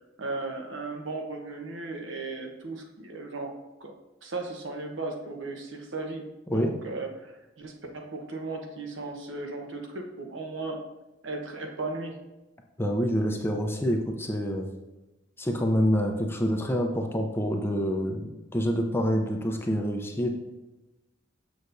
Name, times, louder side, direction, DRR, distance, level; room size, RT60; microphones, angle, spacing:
voice 1, 0.2-3.5 3.8-3.9 4.2-6.2 6.5-7.3 7.6-10.8 11.2-12.1, right 3 dB, 70° right, 2 dB, 0.9 m, -36 dB
voice 2, 12.8-14.7 15.4-20.4, equal, 10° left, 2 dB, 0.5 m, -27 dB
6.7 x 6.4 x 2.6 m, 1.0 s
head